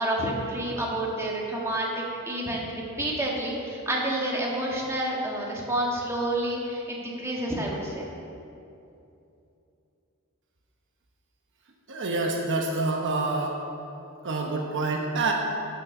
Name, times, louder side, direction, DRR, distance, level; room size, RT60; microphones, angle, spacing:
voice 1, 0.0-1.9 2.3-8.1, right 1 dB, 10° right, -3 dB, 1.6 m, -29 dB
voice 2, 11.9-13.6 14.2-15.3, right 3 dB, 55° right, 1 dB, 1.0 m, -27 dB
13.0 x 6.4 x 5.4 m, 2.7 s
head